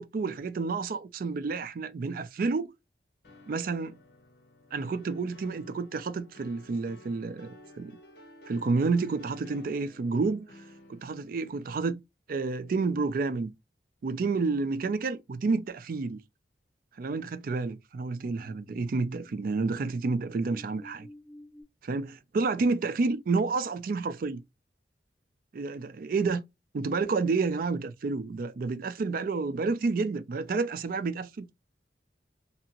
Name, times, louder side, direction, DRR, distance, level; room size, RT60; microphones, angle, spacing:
voice 1, 0.0-2.7 3.5-4.0 4.7-8.0 8.5-10.5 10.9-12.0 12.3-13.5 14.0-16.2 17.0-21.1 21.8-24.4 25.5-26.4 26.7-31.5, right 4 dB, 50° right, 0.3 m, -30 dB
sound 1, 3.2-11.5, left 1 dB, 60° left, 0.8 m, -53 dB
sound 2, 18.3-21.6, equal, 70° right, 1.2 m, -52 dB
2.7 x 2.5 x 2.7 m
head